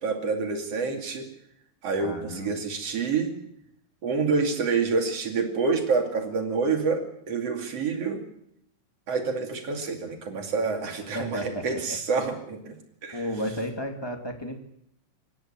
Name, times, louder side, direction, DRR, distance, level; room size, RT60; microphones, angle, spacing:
voice 1, 0.0-1.3 1.8-3.3 4.0-8.2 9.1-12.7 13.0-13.2, right 4 dB, 50° right, 4 dB, 3.4 m, -27 dB
voice 2, 2.0-2.6 11.1-12.0 13.1-14.6, equal, 10° left, 4 dB, 1.7 m, -33 dB
25.5 x 11.0 x 9.0 m, 0.75 s
omnidirectional pair, 3.8 m